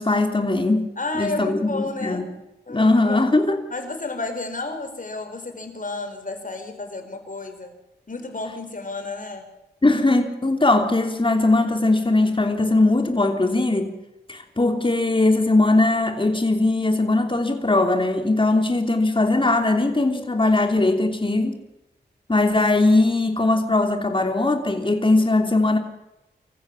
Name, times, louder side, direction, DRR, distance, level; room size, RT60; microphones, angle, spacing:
voice 1, 0.0-0.9 1.1-2.2 2.7-3.6 9.8-13.9 14.3-21.5 22.3-25.8, left 2 dB, 30° left, 5 dB, 3.2 m, -20 dB
voice 2, 1.0-2.2 2.7-3.3 3.7-7.7 8.1-9.4, left 3 dB, 50° left, 6 dB, 4.7 m, -31 dB
26.0 x 15.0 x 7.3 m, 0.95 s
cardioid pair, 50°, 18 cm